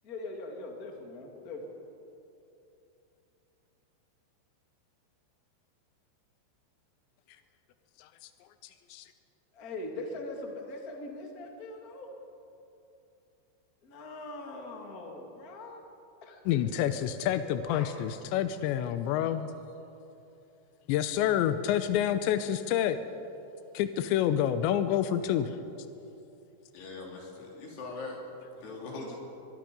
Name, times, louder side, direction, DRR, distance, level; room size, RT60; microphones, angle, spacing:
voice 1, 0.0-1.6 9.5-12.1 13.8-15.8 16.2-16.4 17.4-17.9 28.6-29.2, left 2 dB, 30° left, 1 dB, 1.9 m, -42 dB
voice 2, 16.5-19.5 20.9-23.0 23.7-25.6, left 10 dB, 90° left, 10 dB, 3.0 m, -28 dB
voice 3, 26.7-28.2 28.6-29.2, left 3 dB, 65° left, -1 dB, 5.2 m, -41 dB
23.0 x 22.5 x 5.3 m, 2.8 s
omnidirectional pair, 5.1 m